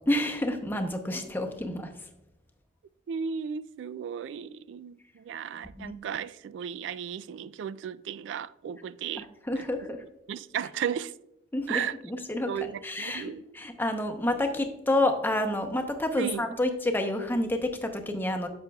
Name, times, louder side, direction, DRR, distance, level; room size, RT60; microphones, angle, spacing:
voice 1, 0.1-1.9 5.8-6.0 9.5-10.0 11.5-11.8 12.1-12.5 12.8-18.5, left 1 dB, 10° left, 0.7 m, -29 dB
voice 2, 3.1-9.3 9.9-10.0 10.3-11.1 11.7-12.0 12.5-13.4 16.2-16.4, right 8 dB, 85° right, 0.3 m, -35 dB
10.0 x 7.2 x 2.3 m
head